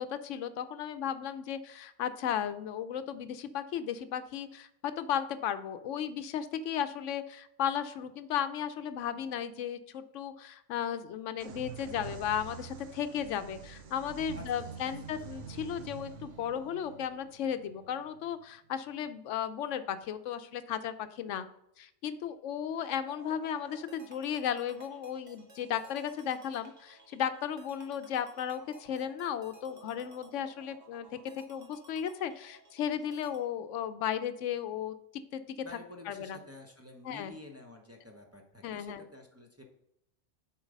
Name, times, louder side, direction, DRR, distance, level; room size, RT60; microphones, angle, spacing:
voice 1, 0.0-21.5 21.8-31.1 31.4-35.0 35.3-35.4 36.1-36.4 37.0-37.3 38.6-39.0, left 9 dB, 85° left, 11 dB, 0.9 m, -35 dB
sound 1, 11.4-19.0, right 7 dB, 85° right, 1.2 m, -46 dB
voice 2, 14.3-15.3 35.6-39.6, left 2 dB, 15° right, 1 dB, 0.8 m, -50 dB
sound 2, 23.0-33.4, right 1 dB, 40° right, 1.1 m, -56 dB
7.1 x 4.6 x 5.2 m, 0.78 s
omnidirectional pair, 1.2 m